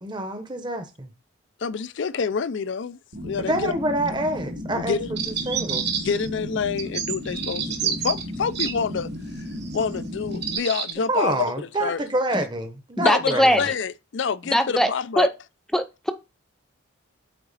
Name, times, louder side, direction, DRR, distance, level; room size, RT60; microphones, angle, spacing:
voice 1, 0.0-1.1 3.4-5.0 5.3-5.9 11.1-13.7, right 1 dB, 20° right, 0.8 m, -27 dB
voice 2, 1.6-3.0 3.2-3.7 4.8-5.1 6.0-9.1 9.4-9.5 9.7-11.5 11.8-12.0 13.0-15.3, left 6 dB, 60° left, 0.4 m, -27 dB
sound 1, 3.1-10.6, left 1 dB, 75° right, 1.9 m, -34 dB
sound 2, 5.2-6.3 6.8-8.7 9.6-9.8 10.3-10.9, right 8 dB, 50° right, 1.3 m, -28 dB
voice 3, 13.0-13.6 14.5-14.9 15.2-15.3 15.7-16.1, equal, ahead, 0.4 m, -20 dB
8.8 x 4.0 x 4.0 m
head